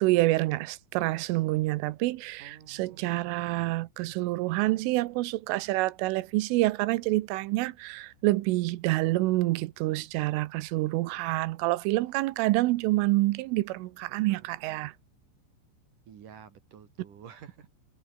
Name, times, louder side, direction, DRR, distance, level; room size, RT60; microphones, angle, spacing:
voice 1, 0.0-14.9, right 19 dB, 90° right, 3.4 m, -27 dB
voice 2, 2.4-3.8 14.4-14.5 16.1-17.7, right 8 dB, 50° right, 3.3 m, -51 dB
omnidirectional pair, 5.6 m